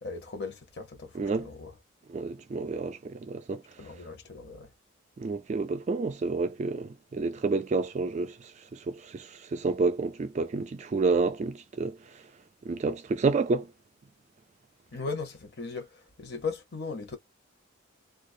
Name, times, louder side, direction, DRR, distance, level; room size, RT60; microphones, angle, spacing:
voice 1, 0.0-1.7 3.8-4.7 14.9-17.2, left 4 dB, 55° left, 0.9 m, -38 dB
voice 2, 1.2-1.5 2.1-3.6 5.2-8.3 8.7-12.0 12.7-13.7, right 4 dB, 35° right, 0.3 m, -29 dB
2.4 x 2.0 x 2.5 m
head